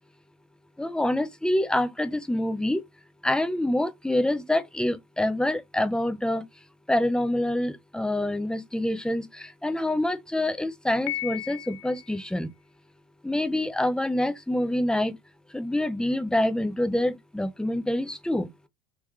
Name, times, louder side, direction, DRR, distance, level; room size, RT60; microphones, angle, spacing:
voice 1, 0.8-2.8 3.2-6.4 6.9-12.5 13.2-15.1 15.5-18.5, left 1 dB, 5° left, 0.5 m, -26 dB
Piano, 11.1-12.2, left 15 dB, 65° left, 0.5 m, -35 dB
3.3 x 3.1 x 2.3 m
hypercardioid pair, 85°, 31 cm